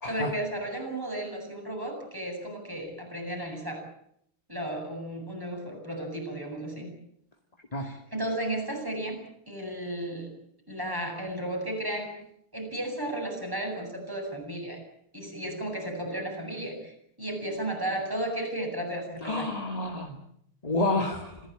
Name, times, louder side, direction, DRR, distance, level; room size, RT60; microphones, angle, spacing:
voice 1, 0.0-3.8 4.5-6.9 7.8-10.3 10.7-12.1 12.5-14.8 15.1-19.6, right 1 dB, 10° right, 1 dB, 7.9 m, -34 dB
voice 2, 19.2-20.2 20.6-21.3, left 2 dB, 20° left, 4 dB, 2.1 m, -29 dB
26.5 x 16.5 x 9.0 m, 0.72 s
omnidirectional pair, 2.4 m